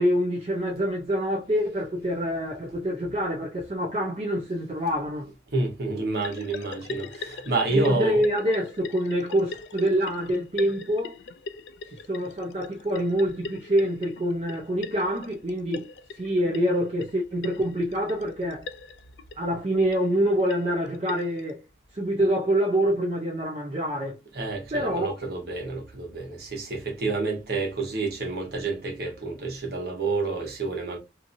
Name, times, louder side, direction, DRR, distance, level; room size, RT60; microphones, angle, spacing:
voice 1, 0.0-5.3 7.7-11.2 12.1-15.9 16.1-18.7 19.4-21.6 21.9-24.2 24.7-25.1, equal, 35° right, 0.4 m, -26 dB
voice 2, 5.5-8.2 24.3-31.0, right 3 dB, 60° right, 1.1 m, -29 dB
sound 1, 6.2-21.5, left 4 dB, 75° left, 0.4 m, -41 dB
2.7 x 2.6 x 2.6 m
head